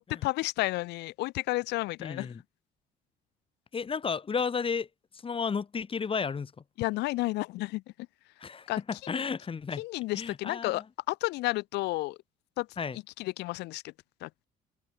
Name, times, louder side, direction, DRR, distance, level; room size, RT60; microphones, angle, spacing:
voice 1, 0.0-2.3 6.8-7.8 8.7-8.8 9.8-12.2 12.6-12.7 13.2-13.8 14.2-14.4, left 20 dB, 90° left, 3.2 m, -31 dB
voice 2, 2.0-2.4 3.7-4.9 5.2-6.5 8.4-9.8 10.1-10.8 12.8-13.0, left 5 dB, 30° left, 6.8 m, -33 dB
open air
cardioid pair, 110°, 17 cm